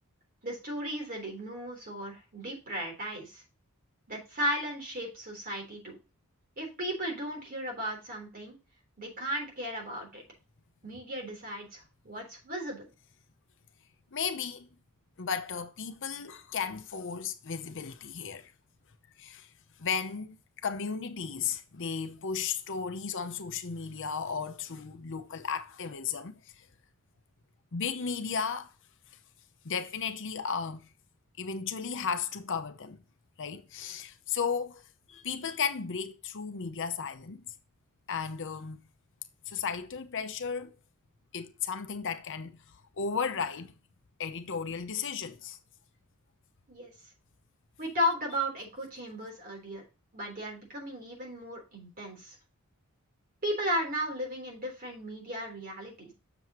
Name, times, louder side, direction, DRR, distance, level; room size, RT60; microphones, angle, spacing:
voice 1, 0.4-3.4 4.1-6.0 6.6-8.6 9.0-10.2 10.8-12.9 46.7-46.9 47.8-49.8 50.1-52.4 53.4-56.1, equal, 40° right, 3.6 m, -35 dB
voice 2, 14.1-14.7 15.2-18.5 19.2-19.5 19.8-20.4 20.6-26.3 27.7-28.7 29.6-30.9 31.4-33.0 33.4-34.8 35.1-37.4 38.1-38.8 39.5-40.7 41.3-42.6 43.0-43.7 44.2-45.6, left 6 dB, 55° left, 0.7 m, -34 dB
7.7 x 6.9 x 2.9 m
head